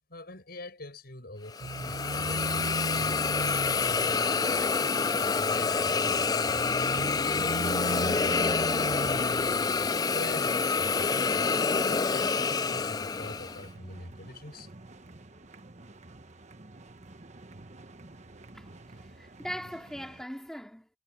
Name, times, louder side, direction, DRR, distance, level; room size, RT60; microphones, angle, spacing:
voice 1, 0.1-4.1 4.5-9.4 9.9-14.7, left 1 dB, 55° left, 7.7 m, -44 dB
Hiss, 1.5-13.6, left 5 dB, 20° left, 0.3 m, -27 dB
sound 1, 1.6-10.0, right 3 dB, 85° right, 0.6 m, -38 dB
sound 2, 2.8-20.2, right 2 dB, 40° right, 1.3 m, -49 dB
voice 2, 19.0-20.9, equal, 5° left, 3.9 m, -40 dB
head